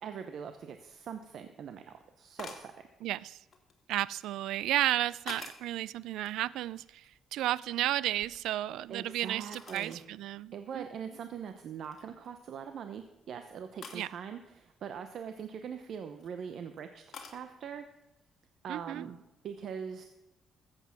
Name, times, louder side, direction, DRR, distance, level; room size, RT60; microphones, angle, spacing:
voice 1, 0.0-1.8 2.2-2.7 8.9-10.0 10.5-17.9 18.6-20.1, right 7 dB, 65° right, 8 dB, 0.8 m, -42 dB
sound 1, 2.4-2.7 3.5-4.3 4.9-5.7 6.2-7.3 7.6-8.9 9.5-10.1 10.6-10.7 11.3-11.5 11.8-12.3 13.8-14.1 15.8-16.3 17.1-17.4, left 5 dB, 50° left, 2.3 m, -48 dB
voice 2, 3.0-3.4 3.9-10.8 13.9-14.1 18.7-19.1, right 14 dB, 90° right, 21 dB, 0.3 m, -33 dB
14.0 x 8.1 x 5.9 m, 1.0 s
cardioid pair, 90°, 0 cm